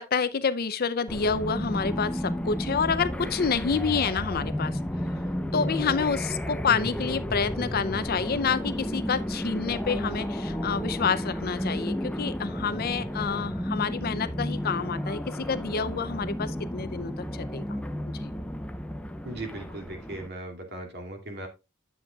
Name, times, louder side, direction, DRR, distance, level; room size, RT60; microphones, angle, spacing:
voice 1, 0.0-4.8 5.5-17.8 18.2-18.3, left 5 dB, 45° left, 0.6 m, -28 dB
sound 1, 1.1-20.3, equal, 5° left, 0.6 m, -32 dB
voice 2, 19.2-21.5, right 2 dB, 50° right, 2.6 m, -38 dB
10.0 x 7.6 x 2.3 m
head